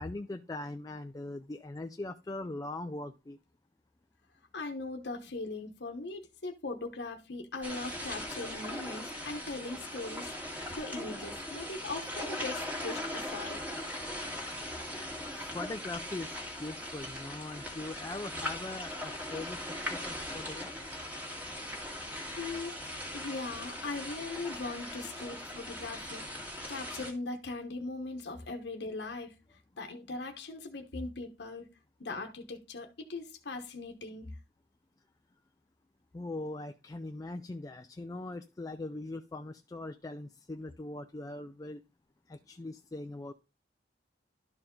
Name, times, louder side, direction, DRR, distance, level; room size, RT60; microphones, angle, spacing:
voice 1, 0.0-3.4 14.8-16.3 16.6-20.8 36.1-41.8 42.3-43.3, left 2 dB, 20° left, 0.4 m, -41 dB
voice 2, 4.5-13.6 22.4-22.8 23.1-26.3 26.7-31.7 32.0-34.3, left 3 dB, 65° left, 1.0 m, -40 dB
sound 1, 7.6-27.1, left 1 dB, 10° right, 1.8 m, -40 dB
12.0 x 4.6 x 3.7 m
head